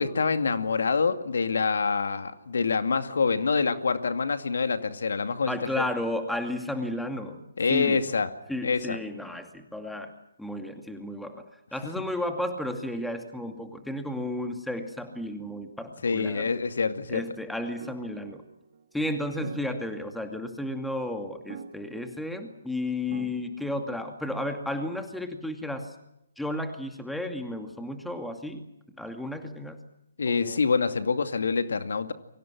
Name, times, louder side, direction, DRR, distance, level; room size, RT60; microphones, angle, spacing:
voice 1, 0.0-5.8 7.6-8.3 8.6-9.0 16.0-17.2 30.2-32.1, left 5 dB, 65° left, 9 dB, 2.4 m, -26 dB
voice 2, 5.5-8.0 8.5-10.1 10.4-16.5 17.1-18.4 18.9-25.9 26.4-28.6 29.0-29.8 30.3-30.6, left 1 dB, ahead, 6 dB, 2.4 m, -33 dB
sound 1, 17.8-24.5, right 7 dB, 45° right, 2.4 m, -47 dB
29.5 x 24.0 x 6.2 m, 0.83 s
figure-of-eight pair, 135°, 0 cm